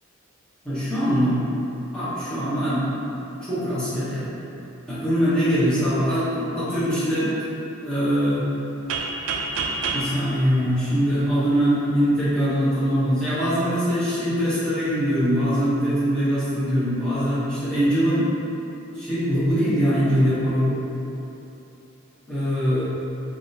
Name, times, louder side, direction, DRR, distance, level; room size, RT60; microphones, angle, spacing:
voice 1, 0.6-1.4 1.9-3.1 3.4-4.3 4.9-7.3 7.8-8.5 9.9-18.3 18.9-20.8 22.3-22.8, equal, 5° left, -12 dB, 0.7 m, -22 dB
sound 1, 8.9-11.6, right 3 dB, 80° right, 0.3 m, -29 dB
3.4 x 2.4 x 2.6 m, 3.0 s
head